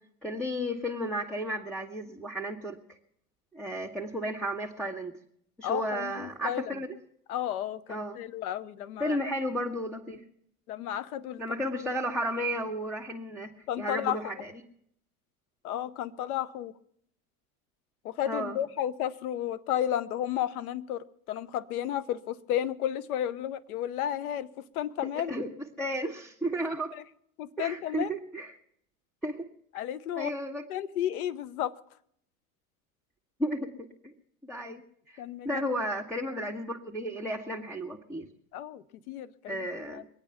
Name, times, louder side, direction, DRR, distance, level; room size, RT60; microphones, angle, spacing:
voice 1, 0.2-3.0 3.5-5.2 5.6-7.0 7.9-8.2 9.0-10.2 11.4-14.5 18.3-18.6 25.2-25.5 25.8-26.9 27.6-28.5 29.2-29.5 30.2-30.6 33.4-33.7 34.0-34.1 34.4-34.8 35.1-38.3 39.5-40.0, equal, ahead, -3 dB, 1.6 m, -33 dB
voice 2, 5.6-6.8 7.3-9.3 10.7-11.4 13.7-14.4 15.6-16.7 18.0-25.3 26.9-27.0 27.4-28.1 29.7-30.3 30.7-31.7 34.6-34.7 35.2-35.6 36.3-36.4 38.5-40.0, left 11 dB, 80° left, 18 dB, 0.9 m, -33 dB
23.0 x 8.9 x 5.8 m, 0.68 s
hypercardioid pair, 90°, 43 cm